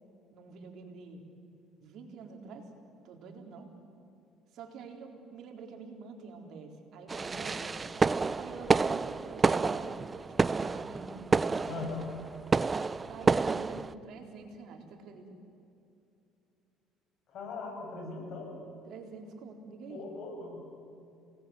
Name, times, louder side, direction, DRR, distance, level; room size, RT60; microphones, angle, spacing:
voice 1, 0.3-1.2 1.8-2.7 3.0-3.7 4.5-7.8 8.4-10.0 10.4-11.3 11.5-11.9 13.1-15.3 18.9-20.0, right 4 dB, 65° right, 3 dB, 3.9 m, -47 dB
sound 1, 7.1-13.9, right 4 dB, 25° right, 0.6 m, -29 dB
voice 2, 11.6-12.1 17.3-18.6 19.9-20.6, left 4 dB, 55° left, 2 dB, 7.3 m, -39 dB
29.0 x 19.0 x 7.9 m, 2.7 s
cardioid pair, 100°, 0 cm